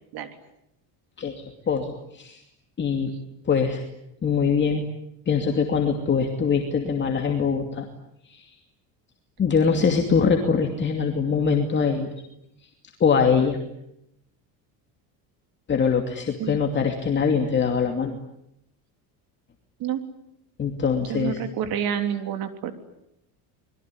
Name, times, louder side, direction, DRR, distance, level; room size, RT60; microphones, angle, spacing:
voice 1, 1.7-2.4 2.8-3.1 3.4-3.8 4.2-4.9 5.3-7.9 8.2-8.5 9.4-12.1 13.0-13.6 15.7-18.2 20.6-21.4, left 6 dB, 25° left, 3 dB, 2.6 m, -23 dB
voice 2, 21.0-22.8, right 9 dB, 60° right, 8 dB, 3.4 m, -28 dB
26.5 x 22.0 x 9.8 m, 0.81 s
cardioid pair, 140°, 42 cm